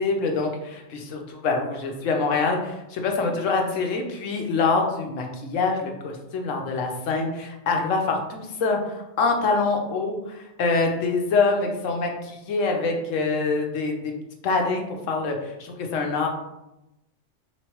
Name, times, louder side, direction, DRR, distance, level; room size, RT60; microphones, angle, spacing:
voice 1, 0.0-14.1 14.4-16.3, left 4 dB, 75° left, 2 dB, 1.1 m, -25 dB
4.1 x 3.1 x 3.0 m, 0.92 s
omnidirectional pair, 1.3 m